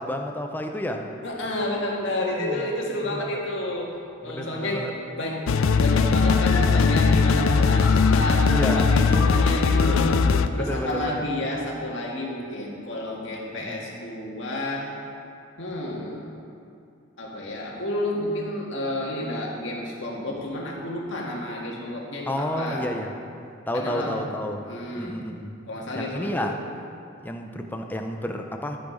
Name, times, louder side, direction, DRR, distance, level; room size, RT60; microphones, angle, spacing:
voice 1, 0.0-1.1 2.3-2.7 3.0-3.4 4.2-4.9 8.5-8.9 10.6-11.3 13.5-13.9 22.2-23.1 23.7-24.7 25.0-25.6 25.9-26.6 27.2-28.8, left 1 dB, 10° left, 4 dB, 0.6 m, -31 dB
voice 2, 1.2-3.9 4.2-4.9 5.2-5.4 5.8-10.1 10.5-14.9 15.6-16.2 17.2-22.9 23.7-24.2 24.6-25.1 25.7-26.5, left 1 dB, 65° left, -3 dB, 1.8 m, -30 dB
sound 1, 5.5-10.5, left 5 dB, 85° left, 0.4 m, -19 dB
13.0 x 6.1 x 5.1 m, 2.6 s
head